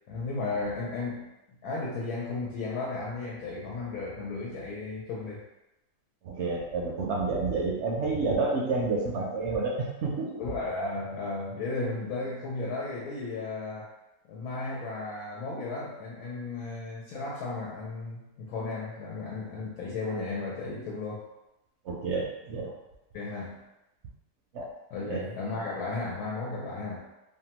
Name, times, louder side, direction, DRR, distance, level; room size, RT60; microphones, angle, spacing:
voice 1, 0.1-5.4 10.4-13.9 14.3-21.2 23.1-23.6 24.9-27.0, left 3 dB, 80° left, -4 dB, 1.1 m, -34 dB
voice 2, 6.2-10.4 21.8-22.7 24.5-24.7 25.1-25.2, right 3 dB, 65° right, -2 dB, 0.7 m, -29 dB
2.8 x 2.1 x 2.9 m, 0.95 s
omnidirectional pair, 1.6 m